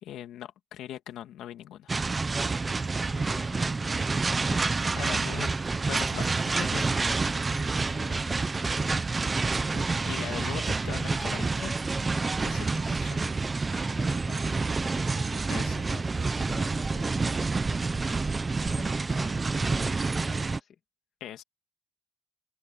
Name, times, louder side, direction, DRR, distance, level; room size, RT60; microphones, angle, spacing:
voice 1, 0.0-1.9 5.0-5.6 5.9-6.8 8.1-8.3 9.7-11.7 12.4-13.3 15.5-15.8 21.2-21.4, left 12 dB, 90° left, 2.1 m, -40 dB
sound 1, 1.9-20.6, right 3 dB, 20° right, 0.7 m, -28 dB
voice 2, 3.1-5.5 6.9-9.1 13.7-18.2 18.6-20.8, left 8 dB, 50° left, 2.2 m, -49 dB
open air
cardioid pair, 180°, 0 cm